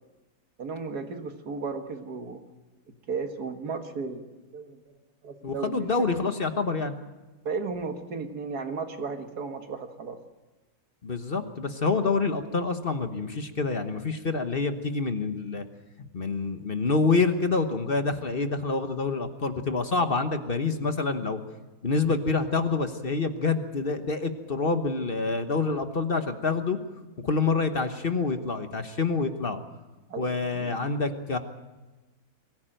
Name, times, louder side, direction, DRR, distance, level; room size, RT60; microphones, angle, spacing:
voice 1, 0.6-2.4 3.1-4.8 5.2-6.2 7.5-10.2 30.1-30.9, right 4 dB, 80° right, 6 dB, 2.2 m, -35 dB
voice 2, 5.4-6.9 11.0-15.6 16.0-21.4 21.8-26.8 27.2-29.6 30.2-31.4, left 4 dB, 40° left, 8 dB, 1.3 m, -27 dB
23.0 x 15.5 x 9.0 m, 1.2 s
omnidirectional pair, 1.6 m